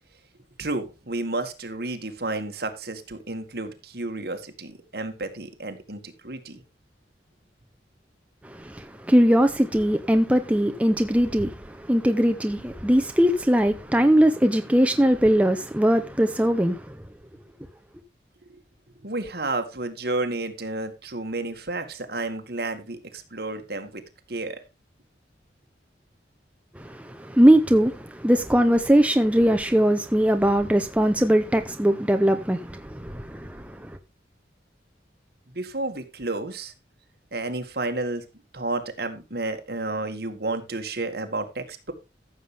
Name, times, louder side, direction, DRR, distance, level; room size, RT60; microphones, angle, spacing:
voice 1, 0.6-6.6 18.5-18.6 19.0-24.0 24.3-24.6 35.5-36.7 37.3-38.2 38.5-41.9, right 2 dB, 60° right, 2.0 m, -31 dB
voice 2, 8.4-16.8 26.8-33.9, equal, 10° right, 0.7 m, -20 dB
14.5 x 7.3 x 3.5 m
head